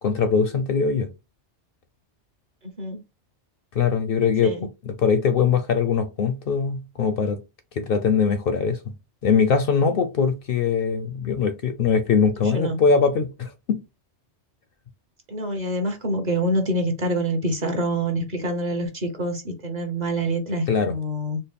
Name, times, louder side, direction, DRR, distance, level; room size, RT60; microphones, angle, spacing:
voice 1, 0.0-1.1 3.8-4.5 4.8-7.4 7.7-8.8 9.2-13.8 20.7-20.9, left 5 dB, 60° left, 0.6 m, -21 dB
voice 2, 12.4-12.8 15.3-21.4, right 1 dB, 40° right, 0.9 m, -26 dB
4.2 x 2.0 x 3.4 m
omnidirectional pair, 1.2 m